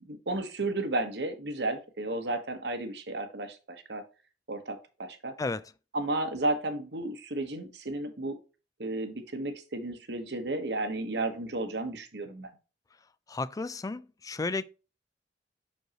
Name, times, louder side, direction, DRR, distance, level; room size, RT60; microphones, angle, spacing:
voice 1, 0.0-4.0 4.5-5.3 5.9-8.4 8.8-12.5, right 2 dB, 70° right, 1.1 m, -33 dB
voice 2, 13.3-14.6, left 3 dB, 20° left, 0.3 m, -33 dB
6.3 x 5.3 x 2.9 m
head